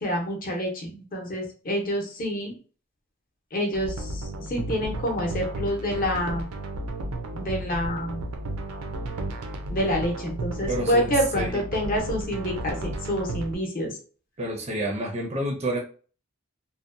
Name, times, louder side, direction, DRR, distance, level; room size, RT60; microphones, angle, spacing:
voice 1, 0.0-2.5 3.5-6.5 7.3-8.2 9.7-12.8 13.1-13.9, equal, 40° left, 1 dB, 0.6 m, -27 dB
sound 1, 3.7-13.5, right 2 dB, 85° right, 0.5 m, -33 dB
voice 2, 10.7-11.6 14.4-15.8, right 1 dB, 30° right, 0 dB, 0.4 m, -29 dB
2.6 x 2.1 x 2.5 m, 0.40 s
head